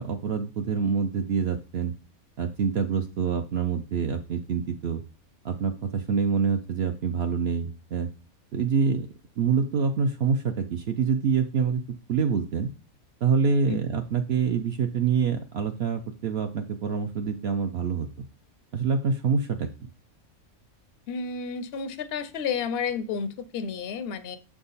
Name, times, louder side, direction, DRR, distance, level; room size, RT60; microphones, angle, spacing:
voice 1, 0.0-1.9 2.4-5.0 5.4-8.1 8.5-9.1 9.4-11.8 12.1-12.7 13.2-18.1 18.7-19.7, right 6 dB, 65° right, 7 dB, 0.6 m, -26 dB
voice 2, 21.1-24.4, left 6 dB, 60° left, 12 dB, 0.6 m, -31 dB
6.8 x 3.6 x 4.0 m, 0.33 s
omnidirectional pair, 1.5 m